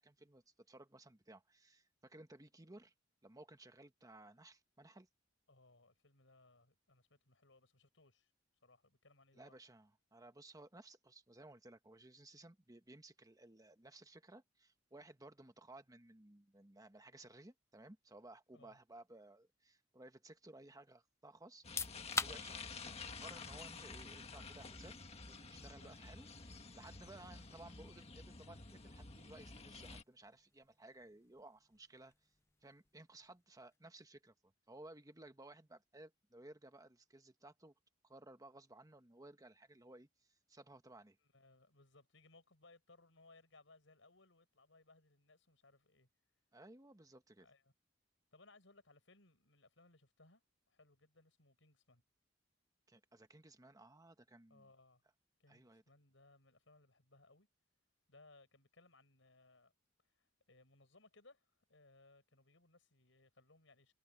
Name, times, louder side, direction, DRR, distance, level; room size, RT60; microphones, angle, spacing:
voice 1, 0.0-2.9 3.2-5.1 9.3-25.0 25.3-32.1 32.6-34.3 34.7-37.7 38.0-41.2 46.5-47.5 52.9-54.7 55.5-55.8, right 2 dB, 20° right, 1.3 m, -58 dB
voice 2, 5.5-8.3 8.6-9.6 18.5-18.8 22.2-22.5 25.8-26.0 41.2-46.1 47.4-47.7 48.3-50.4 50.7-52.0 54.5-55.0 55.4-57.5 58.1-59.7 60.0-63.9, left 2 dB, 80° left, 5.8 m, -66 dB
sound 1, 21.5-34.2, left 4 dB, 15° left, 0.7 m, -50 dB
sound 2, 21.6-30.0, left 4 dB, 35° left, 1.6 m, -51 dB
head